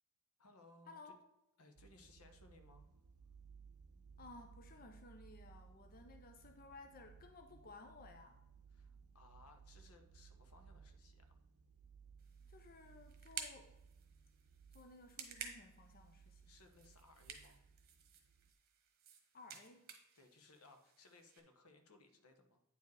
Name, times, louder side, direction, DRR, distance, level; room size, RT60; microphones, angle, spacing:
voice 1, 0.4-1.2 1.6-2.9 8.7-11.4 16.2-17.6 20.1-22.6, left 3 dB, 80° left, 7 dB, 1.0 m, -64 dB
sound 1, 1.8-18.5, right 5 dB, 75° right, 0.6 m, -62 dB
voice 2, 4.2-8.4 12.5-13.7 14.7-16.5 19.3-19.8, left 3 dB, 40° left, 6 dB, 0.6 m, -57 dB
sound 2, 12.2-21.4, right 7 dB, 45° right, 1.2 m, -54 dB
9.0 x 4.8 x 4.7 m, 0.86 s
head